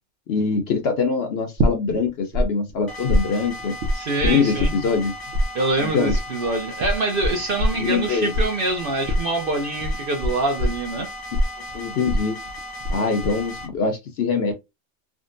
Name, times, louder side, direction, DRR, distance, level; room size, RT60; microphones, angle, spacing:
voice 1, 0.3-3.7 4.2-5.1 5.8-6.1 7.7-8.3 11.7-12.4 12.9-14.5, left 5 dB, 60° left, 0.7 m, -23 dB
sound 1, 1.6-2.4 2.7-5.1 5.3-13.0 13.2-13.7, equal, 70° right, 1.1 m, -23 dB
Belgian Railroad Crossing Alarm Sound, 2.9-13.7, left 1 dB, 20° left, 0.6 m, -36 dB
voice 2, 3.9-4.7 5.5-11.1, right 2 dB, 55° right, 0.7 m, -25 dB
3.5 x 2.1 x 2.5 m
omnidirectional pair, 1.3 m